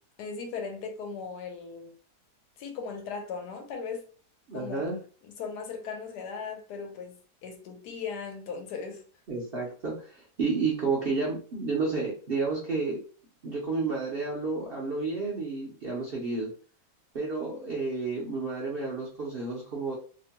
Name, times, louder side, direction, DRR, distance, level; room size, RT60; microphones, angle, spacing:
voice 1, 0.2-1.9 2.6-4.0 4.5-4.9 5.2-7.2 7.4-9.0, left 5 dB, 80° left, 1.2 m, -37 dB
voice 2, 4.5-5.0 9.3-13.0 13.4-16.5 17.1-19.9, right 4 dB, 60° right, 0.6 m, -31 dB
2.9 x 2.1 x 2.8 m
omnidirectional pair, 1.8 m